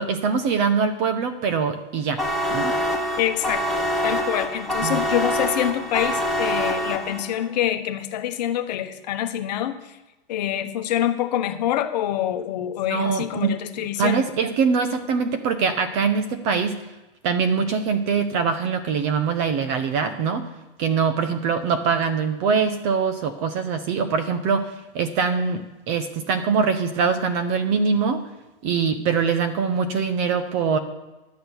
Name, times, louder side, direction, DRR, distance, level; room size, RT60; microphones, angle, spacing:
voice 1, 0.0-2.2 2.5-2.7 4.8-5.0 12.9-13.6 14.0-16.8 17.2-20.5 20.8-28.2 28.6-30.8, right 5 dB, 25° right, 9 dB, 0.5 m, -23 dB
sound 1, 2.2-7.4, equal, ahead, 0.8 m, -25 dB
voice 2, 3.2-9.7 10.3-14.2, left 11 dB, 45° left, 8 dB, 1.0 m, -26 dB
11.0 x 4.3 x 8.0 m, 1.1 s
hypercardioid pair, 155°, 29 cm